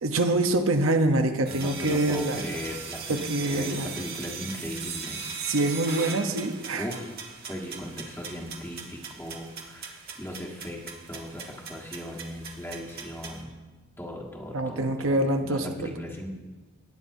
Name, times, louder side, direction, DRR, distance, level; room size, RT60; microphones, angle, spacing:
voice 1, 0.0-2.4 3.1-3.9 5.4-6.9 14.5-15.9, right 2 dB, 75° right, 6 dB, 0.8 m, -25 dB
voice 2, 1.5-5.2 6.7-7.1 7.5-13.5 14.0-15.2 15.4-16.3, equal, 10° left, -1 dB, 1.4 m, -38 dB
sound 1, 1.5-13.4, right 5 dB, 50° right, 1.3 m, -39 dB
17.5 x 9.8 x 2.7 m, 1.3 s
head